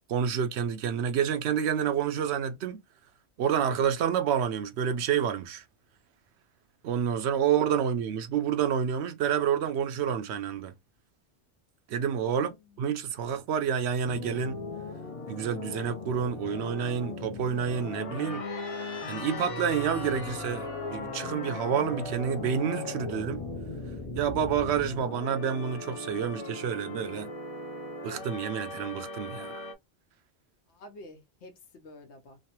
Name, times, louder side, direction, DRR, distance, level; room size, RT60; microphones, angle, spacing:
voice 1, 0.1-2.8 3.4-5.6 6.8-10.7 11.9-12.5 12.8-14.6 15.3-18.5 19.1-23.4 24.2-27.3 28.0-29.7, right 8 dB, 80° right, 0.8 m, -29 dB
voice 2, 12.2-12.8 30.7-32.4, left 1 dB, 85° left, 1.1 m, -50 dB
sound 1, 14.0-29.7, left 2 dB, 45° left, 0.5 m, -38 dB
3.1 x 2.0 x 2.8 m
omnidirectional pair, 1.1 m